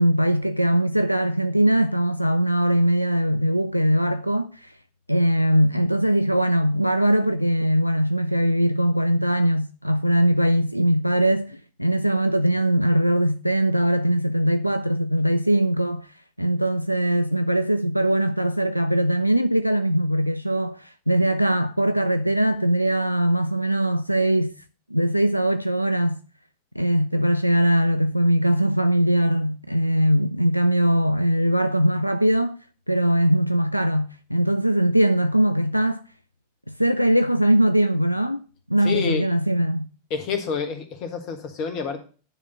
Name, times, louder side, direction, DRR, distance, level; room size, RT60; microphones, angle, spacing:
voice 1, 0.0-4.7 5.1-16.1 16.4-24.5 24.9-26.2 26.8-32.6 32.9-36.0 36.7-38.4 38.7-39.9, right 1 dB, 90° left, 0.3 m, -21 dB
voice 2, 38.8-39.2 40.1-42.0, left 6 dB, 40° left, 1.5 m, -28 dB
9.9 x 3.5 x 6.8 m
figure-of-eight pair, 90°, 0 cm